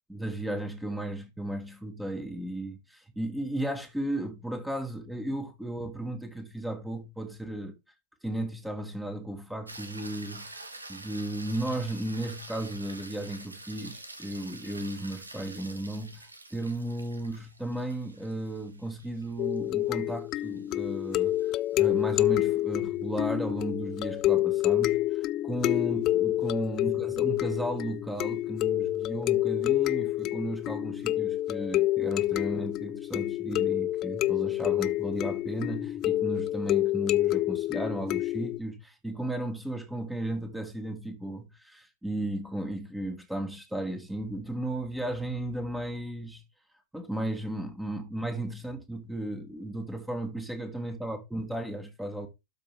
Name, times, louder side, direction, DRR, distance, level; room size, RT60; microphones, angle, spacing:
voice 1, 0.1-7.7 8.2-46.4 46.9-52.3, right 1 dB, 5° right, 1.4 m, -35 dB
sound 1, 9.7-22.1 26.5-26.6, right 2 dB, 80° right, 1.5 m, -47 dB
sound 2, 19.4-38.6, left 15 dB, 35° left, 0.4 m, -28 dB
12.5 x 5.1 x 3.3 m
figure-of-eight pair, 90°, 0 cm